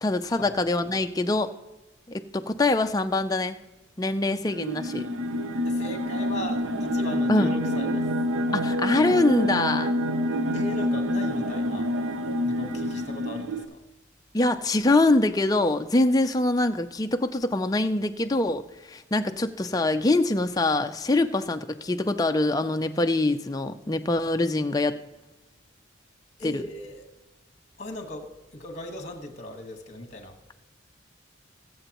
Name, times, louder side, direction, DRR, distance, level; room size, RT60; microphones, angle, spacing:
voice 1, 0.0-1.5 2.1-3.6 4.0-5.1 7.3-7.5 8.5-9.9 14.3-25.0 26.4-26.6, left 2 dB, 20° left, 7 dB, 0.4 m, -24 dB
sound 1, 4.4-13.6, equal, 80° right, 0.8 m, -27 dB
voice 2, 5.6-8.1 10.5-11.9 12.4-13.8 26.4-27.0 27.8-30.4, left 1 dB, 35° left, 5 dB, 1.4 m, -38 dB
21.5 x 7.9 x 3.0 m, 1.1 s
head